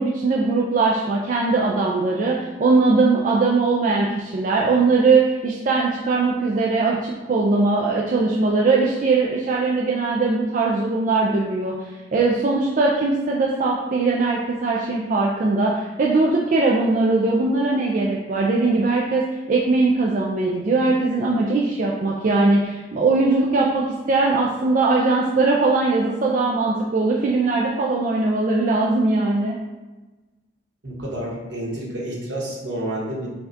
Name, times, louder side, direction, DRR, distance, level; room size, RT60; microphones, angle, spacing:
voice 1, 0.0-11.8 12.1-29.6, right 3 dB, 45° right, -3 dB, 0.4 m, -20 dB
voice 2, 30.8-33.3, right 1 dB, 75° right, -3 dB, 1.1 m, -29 dB
5.5 x 2.3 x 2.7 m, 1.2 s
head